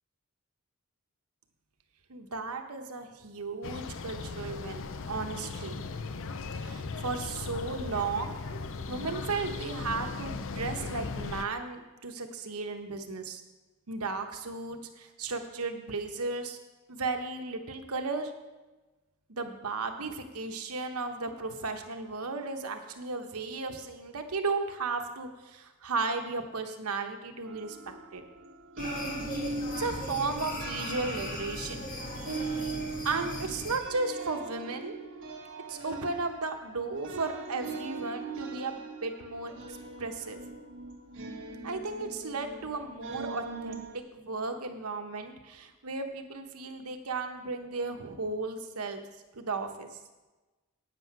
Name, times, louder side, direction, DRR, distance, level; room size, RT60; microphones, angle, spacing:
voice 1, 2.1-5.9 6.5-8.4 8.9-13.4 13.9-16.6 16.9-18.3 19.3-28.2 29.8-31.9 32.2-35.0 35.7-40.4 41.6-49.0 49.3-50.0, right 3 dB, 85° right, 5 dB, 1.1 m, -35 dB
sound 1, 3.6-11.5, left 4 dB, 60° left, 0.6 m, -38 dB
sound 2, 27.5-44.0, right 3 dB, 60° right, 1.4 m, -41 dB
sound 3, 28.8-33.8, left 1 dB, 40° left, 1.5 m, -38 dB
9.1 x 7.7 x 6.0 m, 1.2 s
head